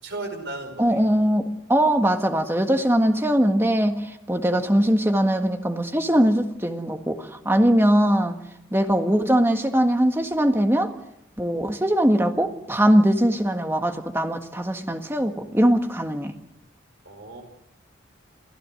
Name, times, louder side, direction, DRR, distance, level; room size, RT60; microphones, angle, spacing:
voice 1, 0.0-1.0 17.0-17.4, right 2 dB, 60° right, 5 dB, 5.2 m, -35 dB
voice 2, 0.8-8.4 8.7-10.9 11.4-16.3, equal, 10° right, 5 dB, 1.6 m, -21 dB
28.5 x 16.0 x 7.7 m, 0.80 s
head